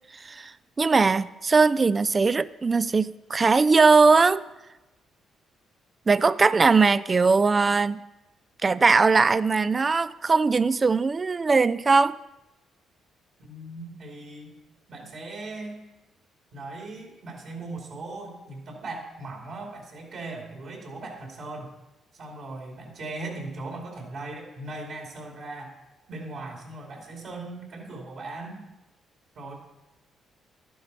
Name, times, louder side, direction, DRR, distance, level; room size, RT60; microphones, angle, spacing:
voice 1, 0.8-4.4 6.1-8.0 8.6-12.2, right 4 dB, 30° right, 16 dB, 0.3 m, -20 dB
voice 2, 13.4-14.6 14.9-15.8 16.5-21.7 22.1-25.7 26.1-28.6 29.3-29.5, right 2 dB, 65° right, 0 dB, 2.6 m, -38 dB
11.5 x 10.0 x 4.1 m, 1.0 s
cardioid pair, 90°, 0 cm